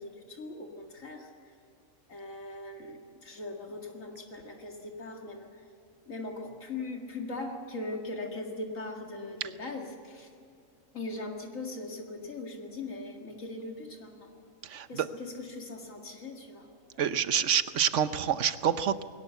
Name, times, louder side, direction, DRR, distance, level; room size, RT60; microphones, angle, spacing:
voice 1, 0.0-1.5 2.1-5.6 6.1-10.3 10.9-14.3 14.9-17.0, left 2 dB, 75° left, 2 dB, 2.4 m, -40 dB
voice 2, 14.6-15.1 17.0-19.0, right 8 dB, 65° right, 12 dB, 1.2 m, -27 dB
21.5 x 18.5 x 8.1 m, 2.4 s
omnidirectional pair, 1.4 m